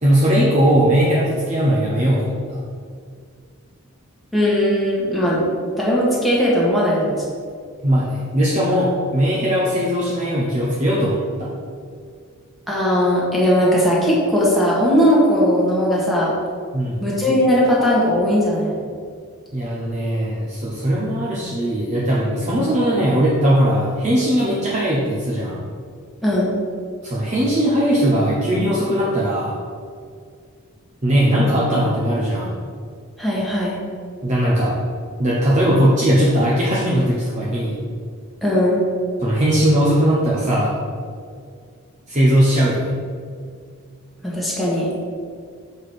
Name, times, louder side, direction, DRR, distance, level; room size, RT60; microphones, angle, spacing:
voice 1, 0.0-2.6 7.8-11.5 16.7-17.0 19.5-25.6 27.0-29.6 31.0-32.6 34.2-34.8 35.2-37.8 39.2-40.8 42.1-42.8, equal, 30° right, -6 dB, 0.9 m, -19 dB
voice 2, 4.3-5.4 5.8-7.2 12.7-16.4 17.0-18.8 26.2-26.5 33.2-33.8 38.4-38.8 44.2-44.9, equal, ahead, -7 dB, 1.5 m, -18 dB
7.1 x 4.4 x 4.8 m, 2.1 s
head